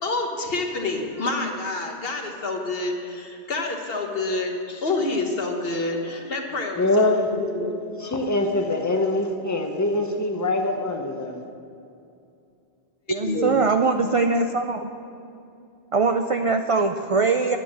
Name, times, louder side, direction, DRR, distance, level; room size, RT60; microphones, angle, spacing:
voice 1, 0.0-7.1 7.3-8.0 13.2-13.6, left 2 dB, 55° left, 2 dB, 1.5 m, -28 dB
voice 2, 6.8-7.3 8.0-11.4, left 2 dB, 15° left, 3 dB, 0.9 m, -23 dB
voice 3, 13.1-14.9 15.9-17.6, right 4 dB, 50° right, 6 dB, 0.4 m, -22 dB
10.5 x 9.3 x 7.4 m, 2.6 s
omnidirectional pair, 1.2 m